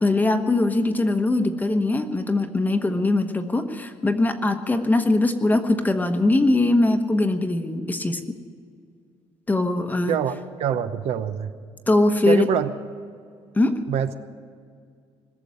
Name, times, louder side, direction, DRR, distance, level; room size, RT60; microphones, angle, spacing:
voice 1, 0.0-8.4 9.5-10.2 11.9-12.5 13.6-13.8, left 2 dB, 15° left, 7 dB, 1.1 m, -21 dB
voice 2, 10.1-11.5 12.3-12.7 13.9-14.1, right 8 dB, 60° right, 9 dB, 0.8 m, -24 dB
21.0 x 7.0 x 9.7 m, 2.2 s
cardioid pair, 130°, 12 cm